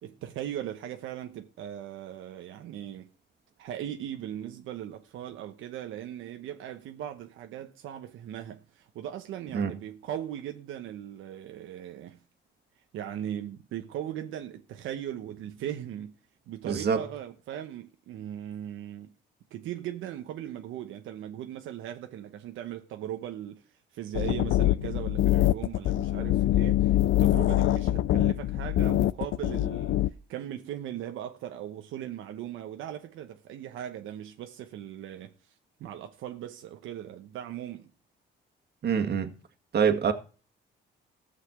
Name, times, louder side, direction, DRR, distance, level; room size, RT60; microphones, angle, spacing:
voice 1, 0.0-3.1 3.6-12.2 12.9-16.1 16.5-19.1 19.5-23.6 23.9-35.3 35.8-37.9, right 11 dB, 85° right, 1.1 m, -38 dB
voice 2, 16.7-17.0 38.8-39.3 39.7-40.1, right 7 dB, 55° right, 1.9 m, -25 dB
sound 1, 24.1-30.1, left 14 dB, 75° left, 0.6 m, -24 dB
15.0 x 5.8 x 8.1 m
cardioid pair, 90°, 20 cm